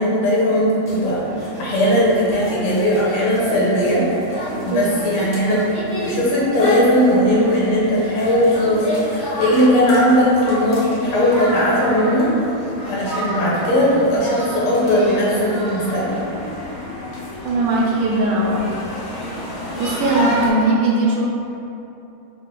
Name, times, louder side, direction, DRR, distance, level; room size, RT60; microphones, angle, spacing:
voice 1, 0.0-4.1 4.6-5.7 6.0-12.5 12.8-16.2, equal, 90° left, -5 dB, 1.9 m, -18 dB
sound 1, 0.9-20.5, equal, 55° left, 0.7 m, -30 dB
voice 2, 17.4-18.6 19.8-21.2, right 2 dB, 75° right, -3 dB, 1.0 m, -19 dB
5.6 x 2.0 x 3.6 m, 2.9 s
omnidirectional pair, 2.4 m